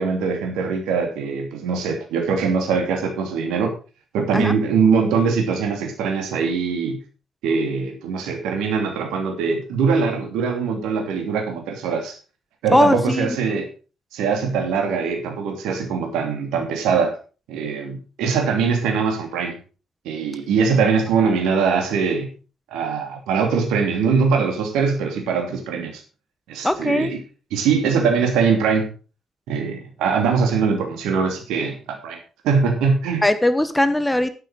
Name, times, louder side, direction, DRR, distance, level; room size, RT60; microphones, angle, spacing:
voice 1, 0.0-3.7 4.1-7.0 7.4-12.2 12.6-13.7 14.1-17.2 17.5-19.6 20.0-22.3 22.7-26.0 26.5-27.2 27.5-28.9 29.5-32.2 32.4-33.2, right 5 dB, 65° right, 2.9 m, -22 dB
voice 2, 12.7-13.4 26.6-27.1 33.2-34.3, left 1 dB, 10° left, 1.2 m, -19 dB
10.5 x 9.3 x 4.8 m
figure-of-eight pair, 40°, 0 cm